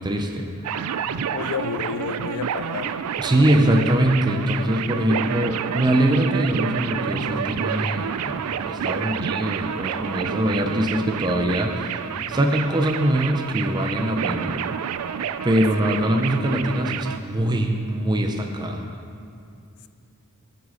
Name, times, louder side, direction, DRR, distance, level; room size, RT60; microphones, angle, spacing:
voice 1, 0.0-1.0 3.2-14.6 15.4-18.8, right 1 dB, 20° right, 3 dB, 0.5 m, -23 dB
sound 1, 0.6-17.2, right 8 dB, 85° right, 0.4 m, -29 dB
voice 2, 1.0-3.0, left 6 dB, 85° left, 12 dB, 0.4 m, -31 dB
14.0 x 6.4 x 3.8 m, 2.4 s
head